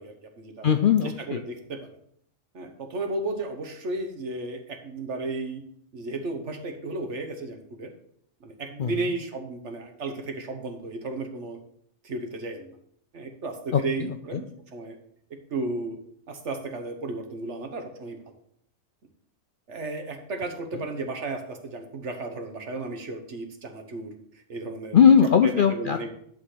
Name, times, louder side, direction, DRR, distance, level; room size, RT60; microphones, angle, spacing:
voice 1, 0.0-0.7 1.0-1.9 2.5-5.6 5.9-7.9 8.4-11.6 12.0-12.7 13.1-15.0 15.5-16.0 16.3-18.2 19.7-24.1 24.5-25.0 25.7-26.1, right 2 dB, 60° right, 4 dB, 1.5 m, -34 dB
voice 2, 0.6-1.4 8.8-8.9 13.7-13.8 14.3-14.4 24.9-26.1, left 7 dB, 60° left, 7 dB, 0.5 m, -19 dB
10.5 x 3.9 x 6.6 m, 0.67 s
omnidirectional pair, 1.4 m